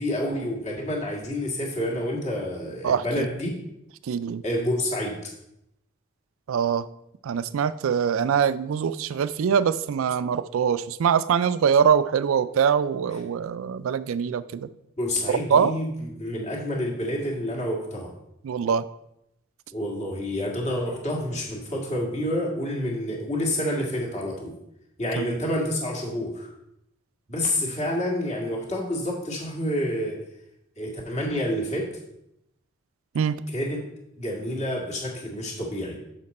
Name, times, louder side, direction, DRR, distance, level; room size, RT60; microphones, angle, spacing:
voice 1, 0.0-3.6 4.4-5.3 15.0-15.9 16.2-18.1 19.7-24.5 25.0-26.5 27.3-30.2 30.8-31.9 33.5-33.8 34.2-36.0, left 1 dB, 35° left, -2 dB, 1.8 m, -28 dB
voice 2, 2.8-3.3 4.0-4.4 6.5-6.9 7.2-14.7 15.5-15.7 18.4-18.8 25.2-25.3 33.1-33.4, right 7 dB, 75° right, 16 dB, 0.3 m, -23 dB
6.5 x 5.9 x 4.1 m, 0.82 s
head